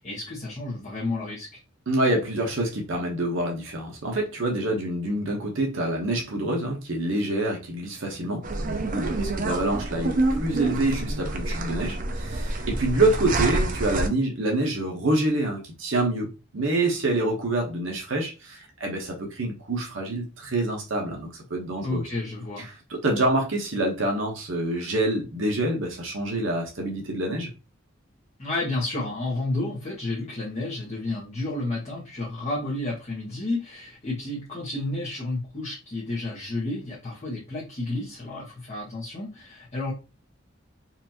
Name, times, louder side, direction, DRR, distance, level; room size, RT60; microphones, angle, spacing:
voice 1, 0.0-1.6 9.5-9.6 21.8-22.7 28.4-39.9, left 2 dB, 35° left, 1.0 m, -31 dB
voice 2, 1.9-22.0 22.6-27.5, right 2 dB, 70° right, 1.0 m, -27 dB
sound 1, 8.4-14.1, right 2 dB, 45° right, 0.5 m, -28 dB
4.2 x 2.6 x 2.8 m
head